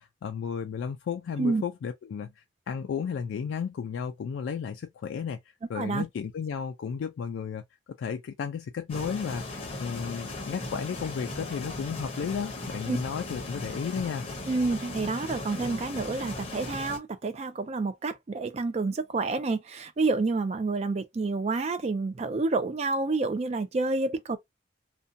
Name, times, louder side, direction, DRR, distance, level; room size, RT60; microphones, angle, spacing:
voice 1, 0.0-5.4 5.7-7.6 8.0-14.3, left 6 dB, 80° left, 0.3 m, -33 dB
sound 1, 8.9-17.0, left 2 dB, 30° left, 0.6 m, -37 dB
voice 2, 14.5-24.4, right 3 dB, 35° right, 0.3 m, -29 dB
2.5 x 2.2 x 2.5 m
head